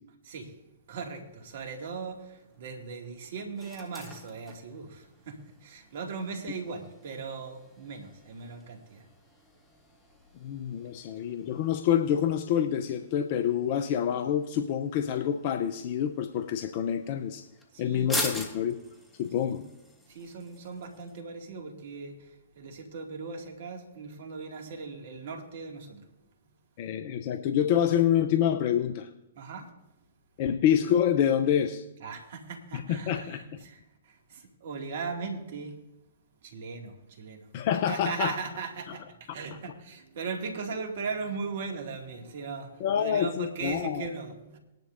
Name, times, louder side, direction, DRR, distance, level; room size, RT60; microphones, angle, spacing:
voice 1, 0.2-0.6 0.9-9.1 17.7-18.1 19.4-19.7 20.1-26.0 29.4-29.7 32.0-35.8 36.4-37.5 37.9-44.6, right 5 dB, 60° right, 3 dB, 2.1 m, -38 dB
sound 1, 1.6-21.2, left 1 dB, 10° left, 1.8 m, -44 dB
voice 2, 10.4-17.4 17.8-18.8 19.2-19.6 26.8-29.1 30.4-31.8 32.9-33.4 37.5-38.3 42.8-44.0, left 9 dB, 45° left, 8 dB, 0.6 m, -27 dB
20.0 x 10.5 x 2.6 m, 0.91 s
hypercardioid pair, 115°, 0 cm